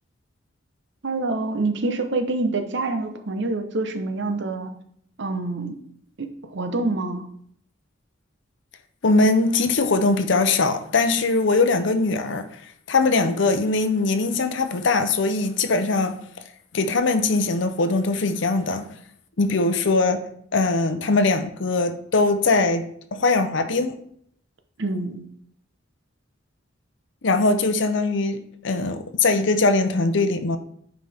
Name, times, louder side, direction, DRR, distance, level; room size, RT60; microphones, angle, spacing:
voice 1, 1.0-4.7 5.2-5.7 6.2-7.2 24.8-25.2, right 2 dB, 60° right, 7 dB, 0.9 m, -26 dB
voice 2, 9.0-12.5 12.9-16.2 16.7-18.8 19.4-20.2 20.5-24.0 27.2-30.6, left 3 dB, 65° left, 9 dB, 0.7 m, -21 dB
9.4 x 4.9 x 3.5 m, 0.67 s
head